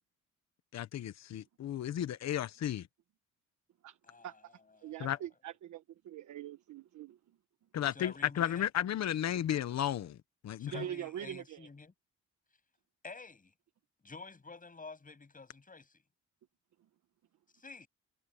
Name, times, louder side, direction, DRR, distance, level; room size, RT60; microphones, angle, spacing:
voice 1, 0.7-2.9 5.0-5.2 7.7-10.2 10.4-10.8, left 11 dB, 60° left, 1.1 m, -33 dB
voice 2, 4.1-4.4 4.7-5.3 7.9-8.7 10.6-11.9 13.0-13.5 14.0-16.0 17.5-17.9, left 4 dB, 25° left, 8.0 m, -50 dB
voice 3, 4.8-7.2 10.7-11.7, right 11 dB, 70° right, 1.4 m, -43 dB
cardioid pair, 90°, 30 cm